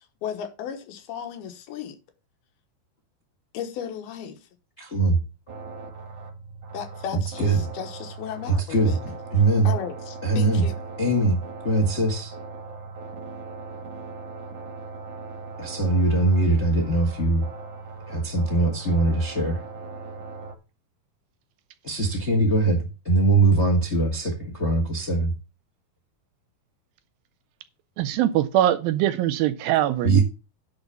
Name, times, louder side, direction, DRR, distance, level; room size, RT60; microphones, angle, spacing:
voice 1, 0.2-2.0 3.5-4.4 6.7-9.0 9.6-10.8, left 8 dB, 80° left, 3.1 m, -35 dB
voice 2, 4.8-5.2 7.4-7.6 8.5-8.9 9.3-9.7 10.2-10.6 11.0-11.4 11.6-12.3 15.6-17.4 18.1-19.6 21.8-25.3 30.0-30.2, right 2 dB, 55° left, 0.7 m, -21 dB
sound 1, 5.5-20.6, right 4 dB, 55° right, 1.3 m, -39 dB
voice 3, 28.0-30.2, right 12 dB, 80° right, 2.2 m, -22 dB
10.5 x 4.3 x 6.8 m
omnidirectional pair, 4.5 m